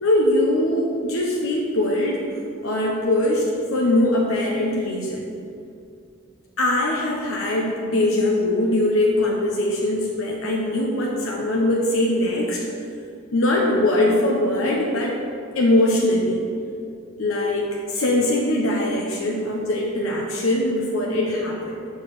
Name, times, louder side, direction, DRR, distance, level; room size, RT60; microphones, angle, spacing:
voice 1, 0.0-2.2 2.6-5.3 6.6-12.7 13.3-15.2 15.6-16.4 17.2-21.8, left 1 dB, 90° left, -2 dB, 0.9 m, -21 dB
6.7 x 4.5 x 6.5 m, 2.4 s
head